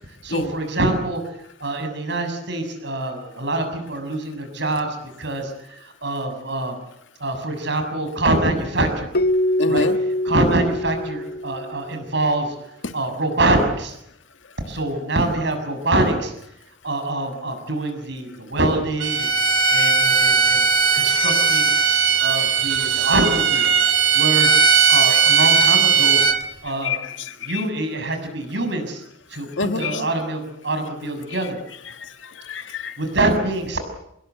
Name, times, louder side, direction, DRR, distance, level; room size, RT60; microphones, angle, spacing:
voice 1, 0.1-6.8 7.2-9.2 9.7-12.5 12.9-14.0 14.7-16.3 16.8-20.7 20.9-21.7 22.2-23.7 24.1-24.5 24.9-26.2 26.6-27.0 27.4-29.0 29.3-29.5 29.7-31.6 32.6-33.8, right 2 dB, 65° right, 7 dB, 6.8 m, -25 dB
Keyboard (musical), 9.1-12.0, left 1 dB, 50° left, 1.1 m, -23 dB
voice 2, 9.6-10.0 12.8-12.9 26.8-27.6 29.6-30.0 32.0-33.0, left 4 dB, 75° left, 8 dB, 1.9 m, -27 dB
Bowed string instrument, 19.0-26.4, right 6 dB, 90° right, 3.0 m, -17 dB
27.0 x 21.0 x 8.3 m, 0.78 s
head